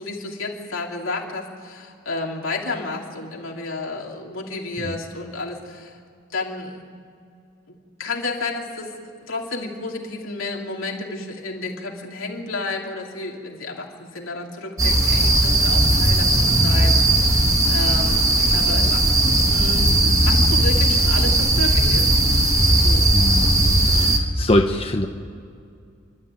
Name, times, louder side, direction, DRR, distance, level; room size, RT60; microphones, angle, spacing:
voice 1, 0.0-6.0 6.3-6.8 7.7-8.9 9.3-19.9 20.2-22.1 22.7-23.1, left 3 dB, 80° left, 0 dB, 3.1 m, -31 dB
sound 1, 14.8-24.2, right 1 dB, 15° right, 1.6 m, -17 dB
voice 2, 23.1-25.1, left 1 dB, 30° left, 4 dB, 0.9 m, -23 dB
30.0 x 12.5 x 9.2 m, 2.4 s
head